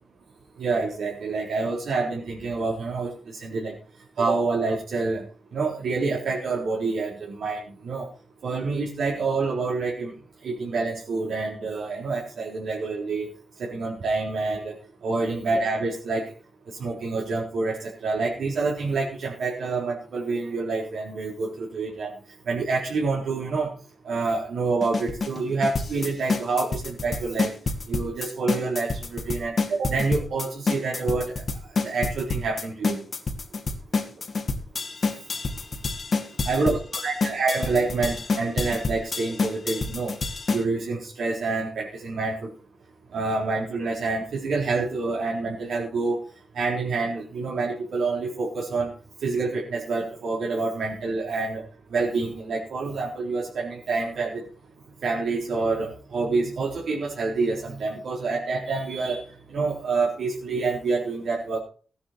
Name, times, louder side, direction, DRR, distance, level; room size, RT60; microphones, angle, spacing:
voice 1, 0.6-3.1 3.4-3.7 4.2-5.2 5.5-8.1 8.4-10.1 10.4-13.3 13.6-14.8 15.0-16.2 16.8-22.1 22.5-23.7 24.1-27.5 27.9-31.3 31.8-33.0 36.5-40.1 40.5-42.5 43.1-46.2 46.5-48.9 49.2-51.6 51.9-54.4 55.0-59.2 59.5-61.6, right 3 dB, 65° right, -3 dB, 3.9 m, -27 dB
sound 1, 24.8-40.6, left 4 dB, 35° left, 2.2 m, -28 dB
17.0 x 10.0 x 4.4 m, 0.39 s
wide cardioid pair, 170°, 0 cm